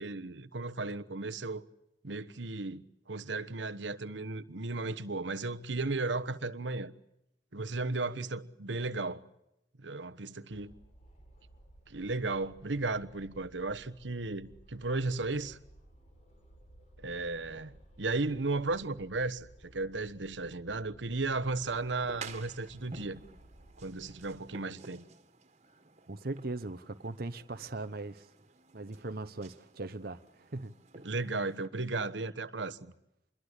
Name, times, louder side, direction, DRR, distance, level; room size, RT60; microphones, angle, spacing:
voice 1, 0.0-1.6 2.0-6.9 7.5-9.2 9.8-10.7 11.9-15.6 17.0-23.2 23.8-25.0 31.0-32.9, right 3 dB, 80° right, 1.2 m, -35 dB
sound 1, 10.5-24.4, right 1 dB, 40° left, 6.9 m, -57 dB
sound 2, 21.6-31.7, right 4 dB, 40° right, 2.2 m, -52 dB
voice 2, 26.1-28.3 28.7-30.7, right 2 dB, 55° right, 1.0 m, -39 dB
27.5 x 22.5 x 8.2 m
head